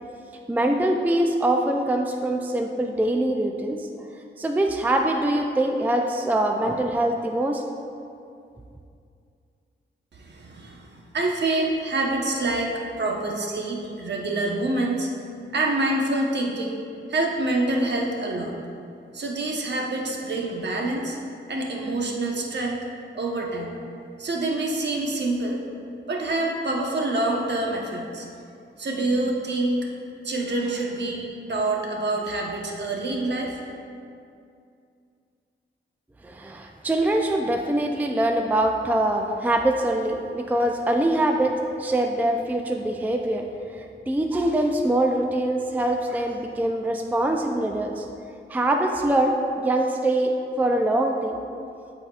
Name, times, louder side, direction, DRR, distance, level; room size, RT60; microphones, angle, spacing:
voice 1, 0.5-4.1 4.4-7.6 36.2-48.0 48.5-49.4 49.6-51.4, right 1 dB, 10° right, 3 dB, 0.4 m, -23 dB
voice 2, 10.1-12.7 13.0-15.1 15.5-16.8 17.1-18.5 19.1-21.2 21.5-22.8 23.1-23.8 24.2-25.6 26.1-28.3 28.8-29.9 30.2-31.2 31.5-33.6, right 2 dB, 55° right, -1 dB, 1.0 m, -26 dB
12.5 x 4.3 x 2.4 m, 2.5 s
cardioid pair, 80°, 21 cm